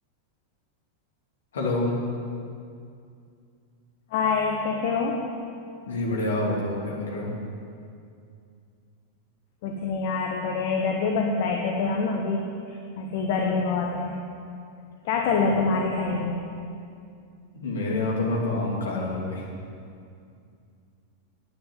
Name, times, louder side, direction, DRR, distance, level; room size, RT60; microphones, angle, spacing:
voice 1, 1.5-2.0 5.9-7.3 17.5-19.5, left 2 dB, 65° left, -2 dB, 2.9 m, -27 dB
voice 2, 4.1-5.3 9.6-14.3 15.0-16.4, left 4 dB, 50° left, 1 dB, 1.3 m, -26 dB
11.0 x 10.0 x 7.7 m, 2.4 s
figure-of-eight pair, 90°, 0 cm